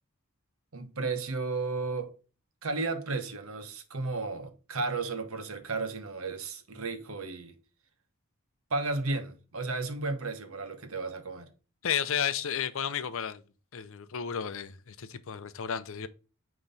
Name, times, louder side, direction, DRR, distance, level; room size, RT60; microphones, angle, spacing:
voice 1, 0.7-2.1 2.6-7.5 8.7-11.5, right 3 dB, 70° right, 1.1 m, -33 dB
voice 2, 11.8-13.4 13.7-16.1, left 8 dB, 65° left, 0.6 m, -32 dB
9.0 x 3.1 x 4.0 m
head